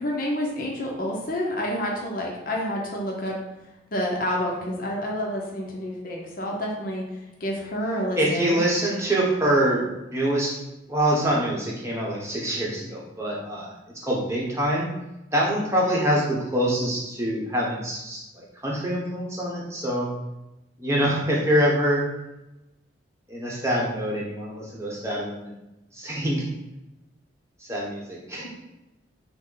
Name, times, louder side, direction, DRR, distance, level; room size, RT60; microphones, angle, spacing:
voice 1, 0.0-3.3 3.9-7.0 7.4-8.6, equal, 50° left, -1 dB, 0.7 m, -28 dB
voice 2, 8.2-10.6 10.9-14.9 15.3-20.1 20.8-22.1 23.3-25.6 25.9-26.5 27.7-28.5, right 1 dB, 15° right, -4 dB, 0.9 m, -25 dB
5.9 x 2.1 x 3.9 m, 0.96 s
head